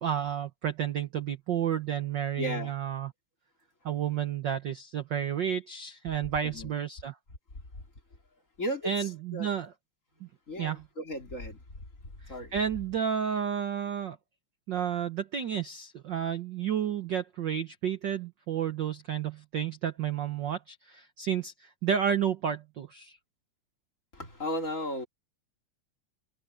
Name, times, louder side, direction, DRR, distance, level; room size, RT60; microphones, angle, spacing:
voice 1, 0.0-3.1 3.8-7.2 8.8-9.7 10.2-10.3 10.6-10.8 12.5-14.2 14.7-23.2, right 8 dB, 85° right, 1.0 m, -31 dB
voice 2, 2.4-2.7 6.4-6.7 8.6-9.5 10.5-11.6 12.3-12.6 24.1-25.1, equal, 25° left, 3.2 m, -35 dB
omnidirectional pair, 3.4 m